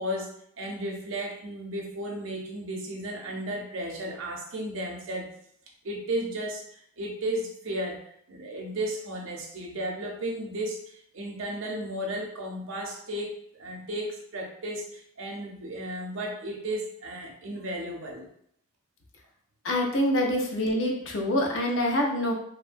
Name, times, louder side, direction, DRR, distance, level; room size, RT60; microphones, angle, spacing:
voice 1, 0.0-5.3 5.8-6.6 7.0-8.0 8.3-18.3, right 1 dB, 80° right, 1 dB, 0.6 m, -34 dB
voice 2, 19.6-22.3, left 1 dB, 70° left, 1 dB, 0.5 m, -25 dB
2.9 x 2.1 x 2.5 m, 0.70 s
head